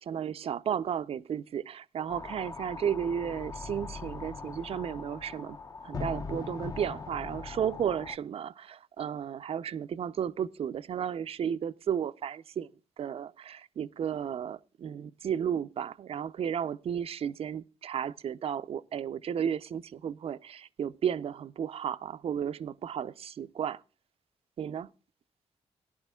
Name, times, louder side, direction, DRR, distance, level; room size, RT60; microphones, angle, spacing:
voice 1, 0.0-5.6 5.8-12.7 13.0-23.8 24.6-24.9, right 8 dB, 60° right, 0.5 m, -33 dB
sound 1, 2.1-8.2, left 4 dB, 35° left, 0.8 m, -40 dB
18.5 x 11.0 x 2.3 m
cardioid pair, 85°, 11 cm